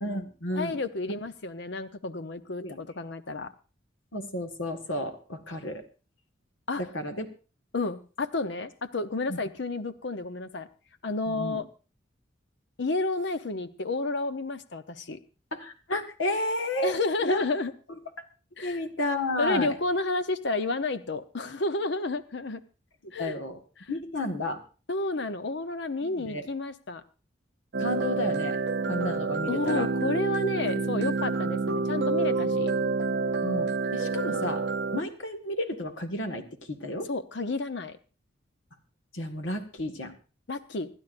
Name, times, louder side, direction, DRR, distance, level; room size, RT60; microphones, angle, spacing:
voice 1, 0.0-0.8 2.6-2.8 4.1-5.8 6.8-7.3 9.3-9.4 11.3-11.6 15.5-16.9 17.2-17.4 18.6-19.7 23.0-23.6 23.9-24.6 26.0-26.4 27.8-28.6 28.9-29.9 33.4-34.6 34.9-37.1 39.1-40.1, left 1 dB, 85° left, 6 dB, 1.7 m, -32 dB
voice 2, 0.6-3.5 6.7-6.8 7.7-10.7 11.0-11.7 12.8-15.2 16.8-17.7 18.6-18.8 19.4-22.6 23.1-23.3 23.8-23.9 24.9-27.0 29.5-32.7 37.1-38.0 40.5-40.9, left 3 dB, 65° left, 11 dB, 0.8 m, -31 dB
sound 1, 27.7-35.0, right 4 dB, 65° right, 0.6 m, -28 dB
26.5 x 11.5 x 2.6 m, 0.34 s
head